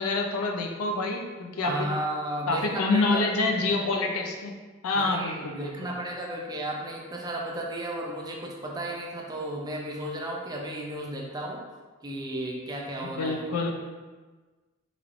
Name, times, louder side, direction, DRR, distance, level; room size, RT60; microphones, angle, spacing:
voice 1, 0.0-1.9 2.5-4.6 4.8-5.7 13.0-13.8, left 3 dB, 85° left, 3 dB, 0.5 m, -27 dB
voice 2, 1.6-3.3 4.9-11.6 12.0-13.5, right 1 dB, 20° right, -1 dB, 0.4 m, -34 dB
3.1 x 3.1 x 2.4 m, 1.3 s
head